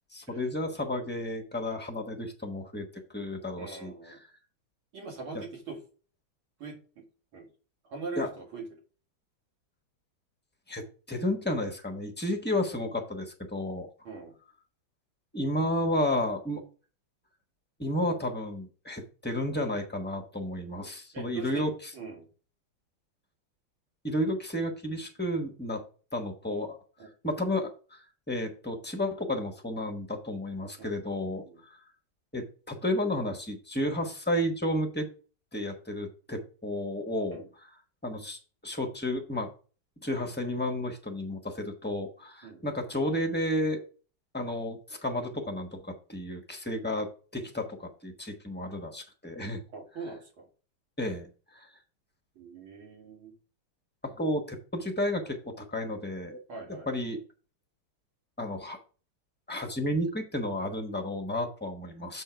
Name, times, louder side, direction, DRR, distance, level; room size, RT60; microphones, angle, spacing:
voice 1, 0.1-2.9 3.1-4.3 5.3-5.4 8.2-8.3 10.7-13.9 15.3-16.6 17.8-21.9 24.0-25.8 26.1-26.8 27.2-31.8 32.3-35.1 35.5-37.7 38.0-39.5 40.0-43.8 44.3-49.6 51.0-51.3 51.5-51.7 54.0-56.4 56.7-57.2 58.4-58.8 59.5-62.2, left 1 dB, 10° left, 3 dB, 0.5 m, -32 dB
voice 2, 3.6-4.2 4.9-5.8 6.6-7.0 7.3-7.5 7.9-8.7 14.0-14.3 21.1-21.7 21.9-22.3 27.0-27.1 30.8-31.0 31.4-31.6 37.3-37.5 42.4-42.6 49.7-50.5 52.4-53.3 56.5-56.9, right 4 dB, 80° right, 1 dB, 2.8 m, -41 dB
7.4 x 4.6 x 4.5 m, 0.38 s
omnidirectional pair, 2.2 m